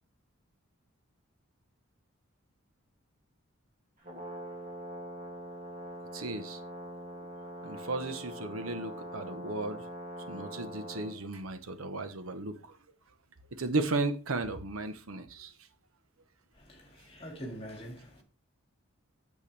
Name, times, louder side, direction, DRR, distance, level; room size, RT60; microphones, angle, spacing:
Brass instrument, 4.0-11.2, right 1 dB, 40° right, 2.4 m, -43 dB
voice 1, 6.1-6.6 7.6-9.8 10.3-12.8 13.6-15.5, right 2 dB, 85° right, 1.0 m, -35 dB
voice 2, 16.5-18.2, equal, 25° left, 2.0 m, -44 dB
8.5 x 7.0 x 3.4 m
head